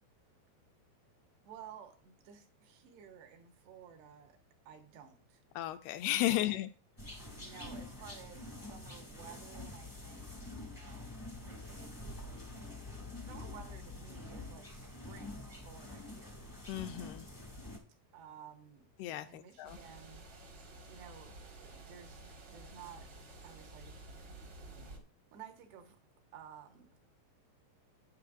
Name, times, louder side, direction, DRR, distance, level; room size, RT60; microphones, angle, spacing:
voice 1, 1.5-4.4 4.7-5.4 6.3-6.6 7.3-10.3 10.6-12.0 13.2-16.4 18.1-18.9 19.3-20.3 20.9-23.1 23.4-24.0 25.3-26.0 26.3-27.0, right 8 dB, 80° right, 3.5 m, -54 dB
voice 2, 5.6-6.7 16.7-17.3 19.0-19.8, left 14 dB, 80° left, 2.4 m, -34 dB
sound 1, 7.0-17.8, left 2 dB, 25° left, 0.4 m, -47 dB
sound 2, 19.6-25.0, right 2 dB, 55° right, 1.2 m, -52 dB
11.5 x 9.7 x 2.5 m
omnidirectional pair, 4.8 m